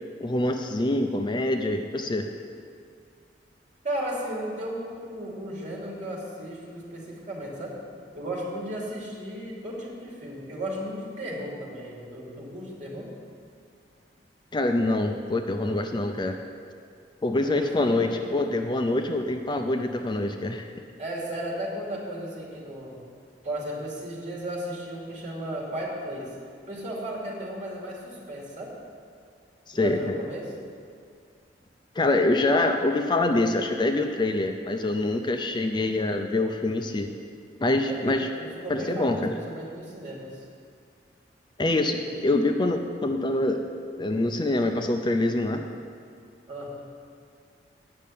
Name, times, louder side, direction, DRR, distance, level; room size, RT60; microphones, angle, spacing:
voice 1, 0.2-2.2 14.5-16.4 17.2-20.7 29.7-30.2 31.9-37.1 37.6-38.3 38.7-39.3 41.6-43.6 44.0-45.6, left 2 dB, 25° left, 5 dB, 0.5 m, -25 dB
voice 2, 3.8-7.7 8.1-13.1 17.4-18.0 21.0-23.0 23.4-26.3 26.7-28.7 29.7-30.5 37.9-40.4 42.0-42.1 46.5-46.7, right 1 dB, 45° right, -3 dB, 2.6 m, -35 dB
8.6 x 6.5 x 8.5 m, 2.3 s
head